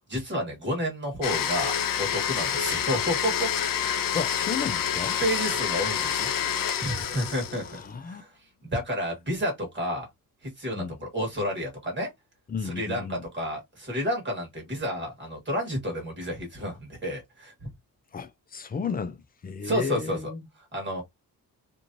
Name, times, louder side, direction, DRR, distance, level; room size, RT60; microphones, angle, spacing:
voice 1, 0.1-3.5 5.2-7.8 8.0-8.3 8.6-10.0 10.4-12.1 12.6-17.5 19.6-20.3 20.6-21.0, equal, 30° right, 1.3 m, -30 dB
Domestic sounds home sounds, 1.2-7.9, left 9 dB, 70° left, 0.6 m, -28 dB
voice 2, 4.1-5.2 7.7-8.2 10.7-11.0 12.5-13.2 18.1-20.4, left 6 dB, 25° left, 0.3 m, -33 dB
3.0 x 2.6 x 2.5 m
wide cardioid pair, 180°, 35 cm